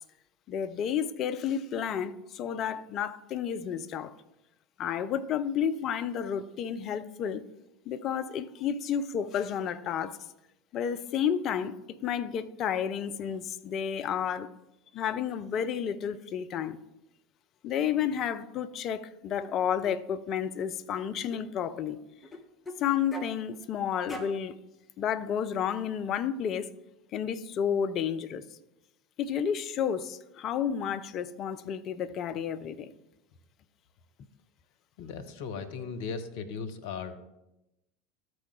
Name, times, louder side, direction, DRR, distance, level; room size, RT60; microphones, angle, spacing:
voice 1, 0.5-4.1 4.8-7.4 7.9-10.2 10.7-11.7 12.0-14.5 14.9-16.8 17.6-22.0 22.8-24.6 25.0-26.7 27.1-28.4 29.2-32.9, left 8 dB, 45° left, 0.5 m, -31 dB
sound 1, 19.4-19.5 19.8-20.0 21.3-21.5 22.2-22.8 23.1-23.4 24.1-24.4, left 1 dB, 15° left, 1.0 m, -41 dB
voice 2, 35.0-37.3, left 5 dB, 60° left, 0.9 m, -37 dB
13.0 x 4.6 x 3.2 m
figure-of-eight pair, 75°, 0 cm